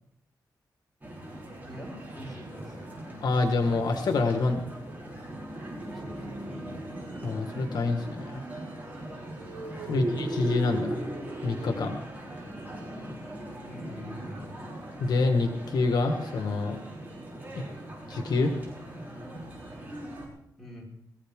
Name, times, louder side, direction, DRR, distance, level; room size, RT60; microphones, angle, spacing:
sound 1, 1.0-20.3, right 1 dB, 25° right, 6.2 m, -39 dB
voice 1, 1.7-2.9 5.9-6.6 13.6-14.6 20.6-20.8, equal, ahead, -4 dB, 5.5 m, -45 dB
voice 2, 3.2-4.7 7.2-8.4 9.9-11.0 11.4-12.0 15.0-16.8 17.5-17.6 18.1-18.5, left 3 dB, 70° left, 5 dB, 1.6 m, -27 dB
22.0 x 15.0 x 3.7 m, 0.76 s
wide cardioid pair, 135°, 7 cm